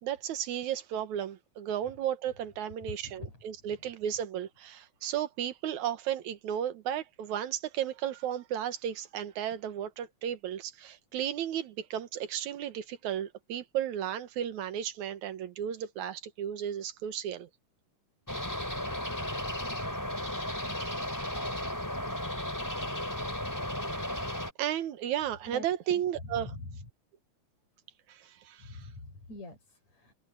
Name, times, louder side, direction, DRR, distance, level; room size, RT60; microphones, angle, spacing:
voice 1, 0.0-17.5 21.9-22.1 24.1-24.3 24.6-26.5 28.1-28.9, right 10 dB, 80° right, 2.6 m, -34 dB
voice 2, 2.8-3.7 25.5-26.9 28.6-30.1, left 2 dB, 65° left, 7.8 m, -45 dB
sound 1, 18.3-24.5, left 1 dB, 5° left, 3.6 m, -34 dB
omnidirectional pair, 3.3 m